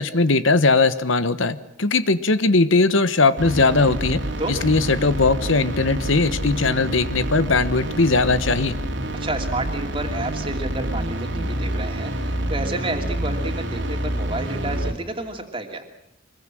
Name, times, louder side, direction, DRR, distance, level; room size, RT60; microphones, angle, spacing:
voice 1, 0.0-4.2 4.5-8.8, left 3 dB, 80° left, 13 dB, 1.2 m, -19 dB
sound 1, 3.4-14.9, right 1 dB, 65° right, 2.9 m, -27 dB
voice 2, 9.2-15.8, right 2 dB, 25° right, 4 dB, 2.8 m, -30 dB
24.5 x 22.0 x 7.7 m, 0.81 s
head